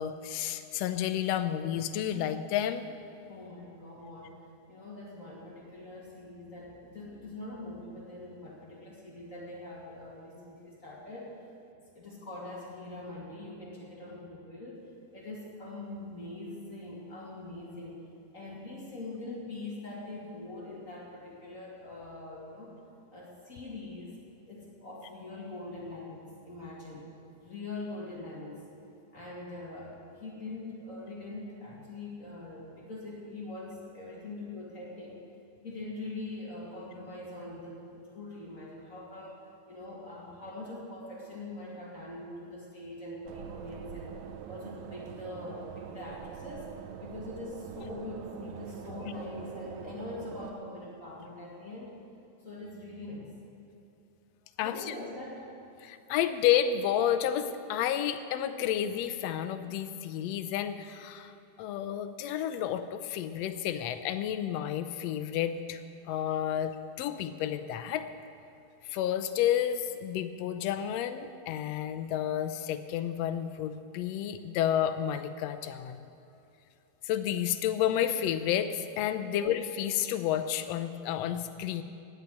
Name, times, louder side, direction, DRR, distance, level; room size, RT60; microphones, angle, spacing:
voice 1, 0.0-2.8 54.6-54.9 55.8-61.3 61.6-65.8 66.1-68.1 68.8-76.0 77.0-81.8, left 10 dB, 75° left, 10 dB, 1.6 m, -31 dB
voice 2, 3.3-4.3 4.7-11.3 11.7-14.8 15.1-18.0 18.3-22.8 23.1-24.2 24.5-27.1 27.4-28.6 29.1-35.2 35.6-39.4 39.7-44.2 44.5-46.7 47.0-51.9 52.4-53.3 54.6-55.6 79.3-79.4, left 2 dB, 30° left, -5 dB, 2.4 m, -43 dB
sound 1, 43.2-50.5, right 8 dB, 80° right, 1.3 m, -44 dB
16.0 x 5.9 x 9.5 m, 2.9 s
omnidirectional pair, 3.4 m